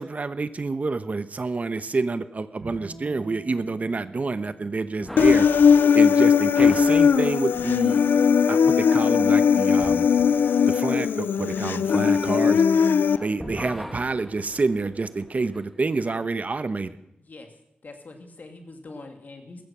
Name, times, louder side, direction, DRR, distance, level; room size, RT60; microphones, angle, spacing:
voice 1, 0.0-5.5 5.9-8.0 8.5-10.1 10.7-12.6 13.2-17.0, right 3 dB, 45° right, 13 dB, 0.9 m, -28 dB
Bowed string instrument, 2.6-5.9, right 2 dB, 85° right, 5.1 m, -47 dB
sound 1, 5.0-13.0 13.3-15.7, equal, ahead, 1.6 m, -42 dB
Human voice, 5.2-13.2, left 6 dB, 90° left, 0.5 m, -19 dB
voice 2, 17.2-17.5 17.8-19.6, left 3 dB, 60° left, 5 dB, 2.7 m, -43 dB
15.5 x 15.0 x 6.1 m, 0.83 s
cardioid pair, 65°, 3 cm